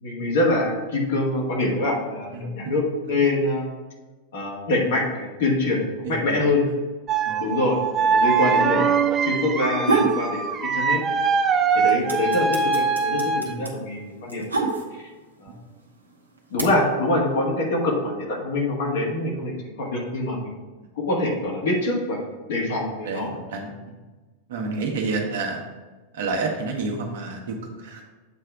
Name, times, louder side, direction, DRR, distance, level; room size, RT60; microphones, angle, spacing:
voice 1, 0.0-3.6 4.3-6.7 7.4-10.4 10.7-11.0 11.7-15.1 15.4-15.6 16.5-19.5 19.8-20.5 20.9-22.2 22.5-23.3, left 2 dB, 60° left, -2 dB, 1.7 m, -25 dB
voice 2, 2.3-2.7 6.0-6.4 7.2-7.4 11.7-11.9 13.4-13.7 15.5-15.6 20.7-20.9 23.0-24.0 24.5-25.6 26.1-28.0, right 3 dB, 60° right, 1 dB, 1.2 m, -30 dB
sound 1, 7.1-13.5, right 6 dB, 25° right, 0.5 m, -22 dB
sound 2, 9.6-10.2 10.6-11.3 11.6-15.2 16.0-16.6, right 3 dB, 80° right, 0.9 m, -25 dB
7.9 x 3.3 x 4.9 m, 1.3 s
figure-of-eight pair, 90°, 0 cm